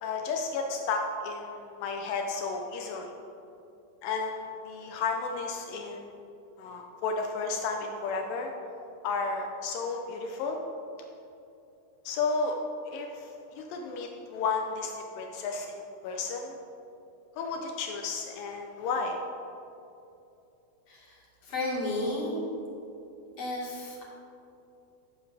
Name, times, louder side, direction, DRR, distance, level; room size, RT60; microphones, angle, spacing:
voice 1, 0.0-3.1 4.0-6.1 6.6-8.5 9.0-10.6 12.1-12.6 12.9-16.6 17.4-19.2, left 4 dB, 90° left, 3 dB, 1.9 m, -33 dB
voice 2, 20.9-22.4 23.4-24.0, left 2 dB, 45° left, -5 dB, 2.4 m, -33 dB
16.0 x 7.0 x 3.4 m, 2.8 s
omnidirectional pair, 4.9 m